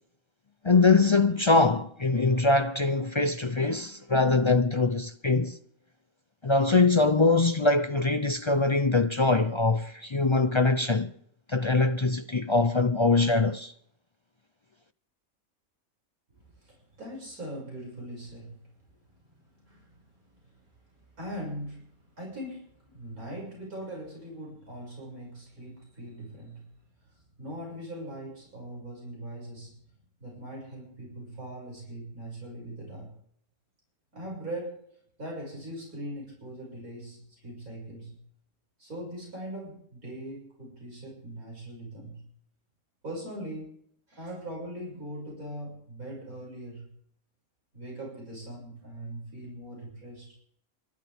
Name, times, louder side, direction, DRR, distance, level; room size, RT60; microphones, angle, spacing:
voice 1, 0.6-5.6 6.4-11.1 11.5-13.7, left 3 dB, 50° left, 0.3 m, -23 dB
voice 2, 16.4-18.7 19.1-26.7 27.1-29.8 30.2-33.1 34.1-34.8 35.2-38.2 38.8-42.3 43.0-43.7 44.1-46.9 47.7-50.3, right 1 dB, 85° right, 7.0 m, -41 dB
28.5 x 12.5 x 3.6 m
omnidirectional pair, 1.5 m